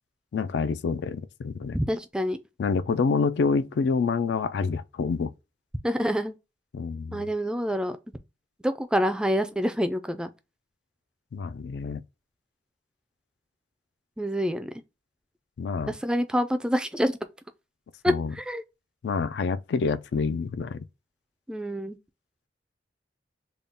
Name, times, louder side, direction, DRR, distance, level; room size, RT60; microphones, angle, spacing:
voice 1, 0.3-1.8 2.6-5.3 6.7-7.3 11.3-12.0 15.6-15.9 18.1-18.3 19.0-20.8, left 5 dB, 75° left, 0.3 m, -27 dB
voice 2, 1.7-2.4 5.8-6.3 7.1-8.0 8.6-10.3 14.2-14.7 15.9-17.2 18.0-18.6 21.5-22.0, equal, 5° right, 0.3 m, -27 dB
3.6 x 2.2 x 3.8 m
head